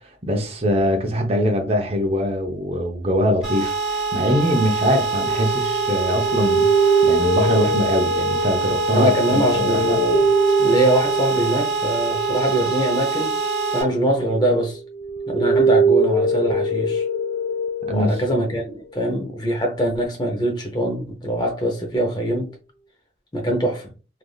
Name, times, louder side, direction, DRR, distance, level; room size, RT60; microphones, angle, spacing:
voice 1, 0.3-10.0 17.9-18.2, equal, 35° right, 0.6 m, -22 dB
sound 1, 3.4-13.8, right 4 dB, 5° right, 1.4 m, -25 dB
sound 2, 5.2-14.6 14.9-18.7, right 3 dB, 50° left, 0.3 m, -23 dB
voice 2, 8.9-10.3 10.6-13.4 13.7-14.8 15.3-17.0 17.9-22.5 23.3-23.9, right 1 dB, 25° left, 0.7 m, -23 dB
3.3 x 2.5 x 2.3 m
head